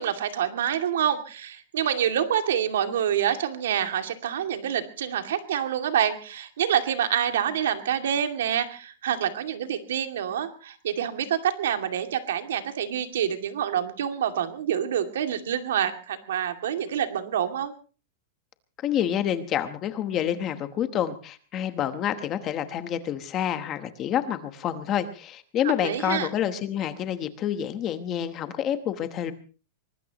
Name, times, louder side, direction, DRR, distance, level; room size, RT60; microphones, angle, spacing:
voice 1, 0.0-17.7 25.6-26.3, right 9 dB, 85° right, 6 dB, 2.4 m, -27 dB
voice 2, 18.8-29.3, left 10 dB, 20° left, 10 dB, 1.1 m, -28 dB
24.0 x 20.0 x 3.0 m, 0.37 s
supercardioid pair, 180°, 0 cm